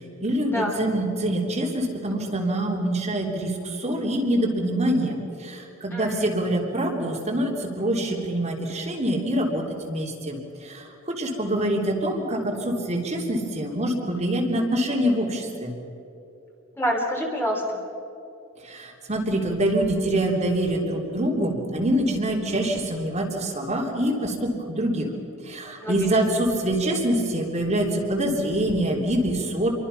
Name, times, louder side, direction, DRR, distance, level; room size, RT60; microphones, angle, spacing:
voice 1, 0.2-10.4 10.6-15.7 18.6-25.1 25.5-29.7, right 1 dB, 30° right, -1 dB, 3.4 m, -25 dB
voice 2, 5.9-6.3 16.8-17.8 25.8-26.3, equal, 10° left, -1 dB, 3.3 m, -27 dB
28.5 x 24.0 x 5.7 m, 2.9 s
head